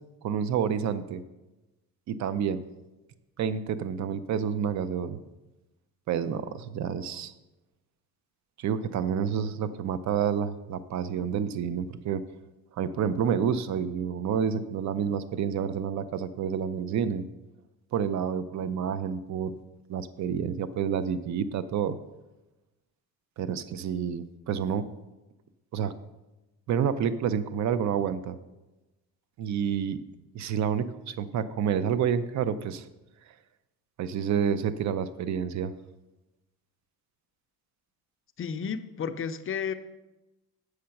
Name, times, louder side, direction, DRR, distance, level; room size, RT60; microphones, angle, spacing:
voice 1, 0.2-1.2 2.1-2.6 3.4-5.2 6.1-7.3 8.6-12.2 12.8-17.2 17.9-19.6 19.9-22.0 23.4-24.8 25.7-25.9 26.7-28.4 29.4-30.0 30.3-32.9 34.0-35.7, right 8 dB, 50° right, 13 dB, 0.5 m, -29 dB
voice 2, 38.4-39.7, left 7 dB, 35° left, 9 dB, 0.5 m, -32 dB
8.5 x 6.5 x 5.8 m, 1.0 s
cardioid pair, 165°, 37 cm